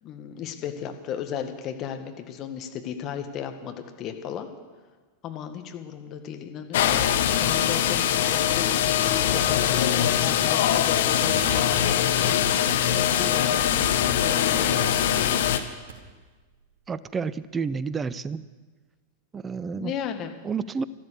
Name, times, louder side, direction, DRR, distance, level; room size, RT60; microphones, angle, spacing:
voice 1, 0.0-4.5 5.2-15.1 19.8-20.3, left 9 dB, 40° left, 6 dB, 1.7 m, -35 dB
sound 1, 6.7-15.6, left 10 dB, 65° left, 1.0 m, -22 dB
sound 2, 8.9-12.9 13.4-15.9, right 6 dB, 65° right, 3.2 m, -42 dB
voice 2, 16.9-18.4 19.3-19.9 20.4-20.8, right 5 dB, 20° right, 17 dB, 0.6 m, -30 dB
13.0 x 13.0 x 6.9 m, 1.4 s
figure-of-eight pair, 95°, 0 cm